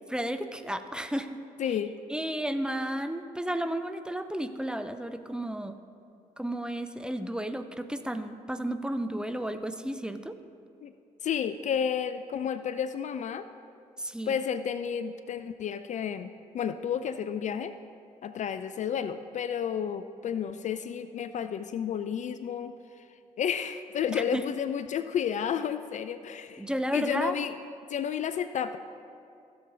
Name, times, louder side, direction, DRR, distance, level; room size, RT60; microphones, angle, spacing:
voice 1, 0.1-1.3 2.1-5.7 6.4-10.3 14.0-14.3 24.1-24.4 26.6-27.4, right 1 dB, 5° right, 9 dB, 0.6 m, -32 dB
voice 2, 1.6-2.0 10.8-10.9 11.2-13.5 14.3-17.7 18.2-22.7 23.4-26.7 26.9-27.5 27.9-28.8, left 8 dB, 45° left, 11 dB, 0.4 m, -31 dB
15.5 x 6.9 x 3.8 m, 2.5 s
figure-of-eight pair, 40°, 18 cm